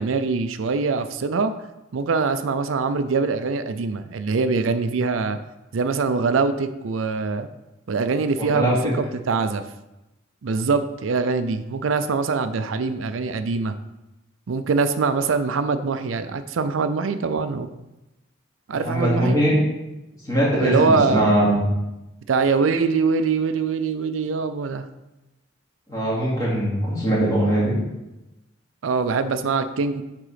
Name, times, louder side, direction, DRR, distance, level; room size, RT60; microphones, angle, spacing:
voice 1, 0.0-1.5 1.9-5.4 5.7-7.5 7.9-9.6 10.4-13.7 14.5-17.7 18.7-19.4 20.6-21.3 22.3-24.8 28.8-30.0, right 4 dB, 85° right, 10 dB, 0.5 m, -23 dB
voice 2, 8.4-8.8 18.7-19.5 20.3-21.6 25.9-27.7, right 1 dB, 15° left, -8 dB, 2.6 m, -21 dB
8.7 x 3.8 x 5.0 m, 0.98 s
head